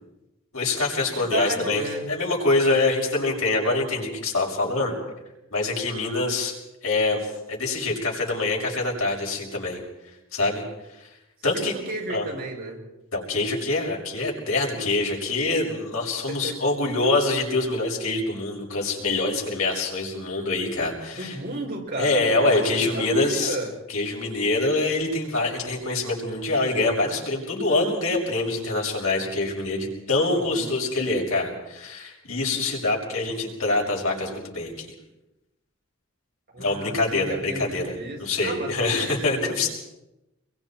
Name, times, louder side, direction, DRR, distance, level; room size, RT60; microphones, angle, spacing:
voice 1, 0.5-4.9 5.5-6.5 6.8-9.8 10.3-10.6 10.9-11.1 11.4-11.7 12.1-12.3 13.1-21.4 22.0-23.6 23.9-34.9 36.6-39.7, left 2 dB, 90° left, -1 dB, 6.5 m, -25 dB
voice 2, 1.1-2.1 3.6-3.8 11.5-12.8 16.3-16.6 21.1-23.7 30.3-30.8 36.5-39.7, right 2 dB, 45° right, -2 dB, 6.0 m, -33 dB
27.0 x 22.5 x 4.6 m, 0.93 s
head